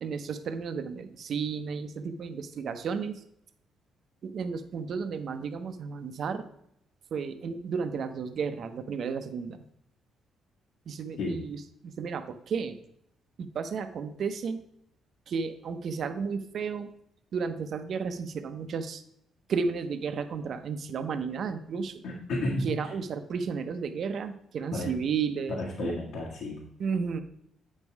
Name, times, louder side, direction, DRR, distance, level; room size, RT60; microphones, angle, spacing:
voice 1, 0.0-3.2 4.2-6.5 7.1-9.6 10.9-11.6 11.8-12.8 13.4-14.6 15.3-16.9 17.3-19.0 19.5-22.0 22.6-25.6 25.8-25.9 26.8-27.2, right 5 dB, 60° right, 9 dB, 0.8 m, -33 dB
voice 2, 22.0-22.9 24.7-24.9 25.5-26.6, left 1 dB, 80° left, -3 dB, 1.6 m, -32 dB
8.3 x 5.5 x 4.6 m, 0.74 s
cardioid pair, 95°, 0 cm